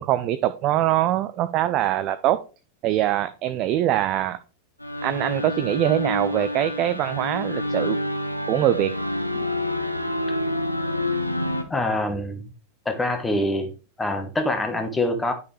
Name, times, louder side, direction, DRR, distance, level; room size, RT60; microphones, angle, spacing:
voice 1, 0.0-2.4 2.8-4.4 5.0-8.0 8.5-8.9, right 13 dB, 40° right, 0.5 m, -23 dB
sound 1, 4.8-11.6, left 1 dB, 90° left, 0.8 m, -28 dB
voice 2, 11.7-12.4 12.8-13.7 14.0-15.3, left 1 dB, 10° left, 1.2 m, -25 dB
10.0 x 5.4 x 3.3 m
figure-of-eight pair, 90°, 0 cm